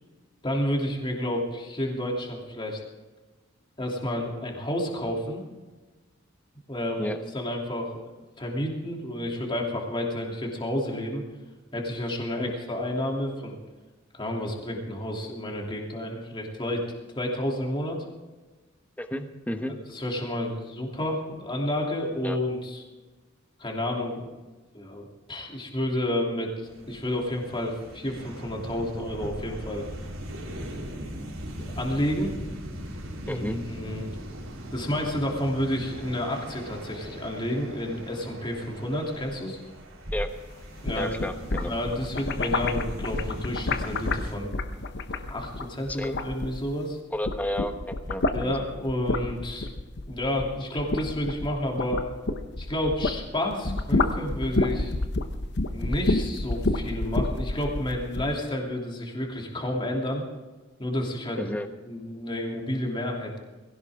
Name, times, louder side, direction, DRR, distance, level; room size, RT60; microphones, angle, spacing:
voice 1, 0.4-2.8 3.8-5.4 6.7-8.0 8.4-11.2 11.7-13.6 14.1-16.9 17.1-18.0 19.9-22.8 23.6-24.3 24.7-29.9 31.6-32.4 33.2-34.1 34.7-39.6 40.8-41.1 41.6-44.5 45.3-47.0 48.3-49.7 50.1-52.0 52.6-54.9 55.7-60.2 60.8-61.4 61.9-63.4, left 1 dB, 25° left, -1 dB, 3.0 m, -30 dB
voice 2, 19.0-19.7 22.2-22.4 33.3-33.6 40.1-40.3 41.0-41.7 45.9-46.2 47.1-48.6 61.4-61.7, left 1 dB, 10° left, 6 dB, 1.1 m, -32 dB
sound 1, 26.6-44.3, equal, 85° right, 3.7 m, -39 dB
sound 2, 40.6-46.9 47.2-53.2 53.5-58.3, left 2 dB, 55° left, 1.0 m, -29 dB
20.5 x 17.0 x 3.7 m, 1.2 s
head